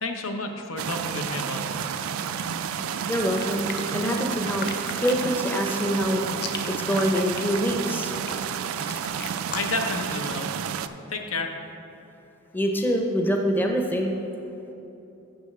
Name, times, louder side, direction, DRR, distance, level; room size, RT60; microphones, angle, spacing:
voice 1, 0.0-1.9 9.5-10.5 11.1-11.5, left 2 dB, 80° left, 4 dB, 0.8 m, -31 dB
sound 1, 0.8-10.9, right 7 dB, 80° right, 0.3 m, -30 dB
voice 2, 3.1-3.7 3.9-4.7 4.9-6.2 6.7-8.1 12.5-14.1, equal, 10° left, 2 dB, 0.6 m, -25 dB
sound 2, 3.3-9.9, left 7 dB, 50° left, 0.6 m, -37 dB
6.9 x 6.0 x 6.6 m, 3.0 s
head